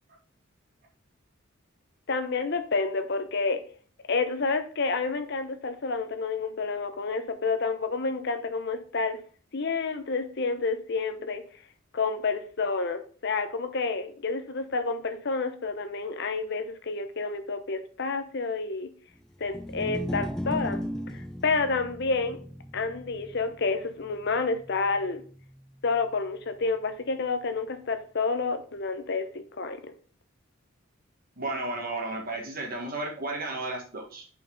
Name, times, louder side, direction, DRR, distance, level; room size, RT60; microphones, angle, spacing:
voice 1, 2.1-3.6 4.1-9.2 9.5-11.4 11.9-18.9 19.4-20.8 21.1-22.4 22.7-25.2 25.8-29.9, left 4 dB, 55° left, 8 dB, 0.7 m, -29 dB
sound 1, 19.4-25.8, left 1 dB, 5° left, 0.3 m, -37 dB
voice 2, 31.4-34.2, right 2 dB, 45° right, 1 dB, 1.6 m, -33 dB
5.3 x 4.5 x 5.2 m, 0.43 s
head